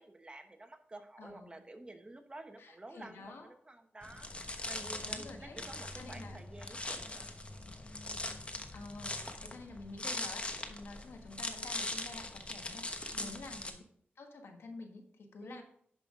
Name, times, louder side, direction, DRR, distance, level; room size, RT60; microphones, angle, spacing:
voice 1, 0.0-4.3 4.7-7.8 13.1-13.4 15.4-15.6, right 2 dB, 25° right, 6 dB, 1.1 m, -51 dB
voice 2, 1.2-1.6 2.6-3.5 5.0-5.6 6.0-6.4 8.7-13.8 14.2-15.6, left 3 dB, 85° left, 4 dB, 1.4 m, -49 dB
sound 1, 4.0-13.7, left 2 dB, 30° left, 1.1 m, -41 dB
10.5 x 5.6 x 3.7 m, 0.67 s
wide cardioid pair, 80°, 4 cm